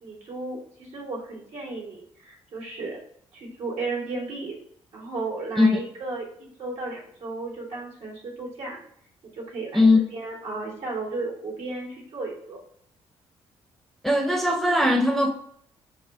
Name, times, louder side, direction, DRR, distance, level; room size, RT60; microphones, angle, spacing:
voice 1, 0.0-3.0 3.3-4.6 4.9-8.8 9.3-9.8 10.1-12.6, right 3 dB, 70° right, 1.9 m, -34 dB
voice 2, 14.0-15.3, left 2 dB, ahead, 0.7 m, -19 dB
4.1 x 2.4 x 4.4 m
cardioid pair, 75°, 11 cm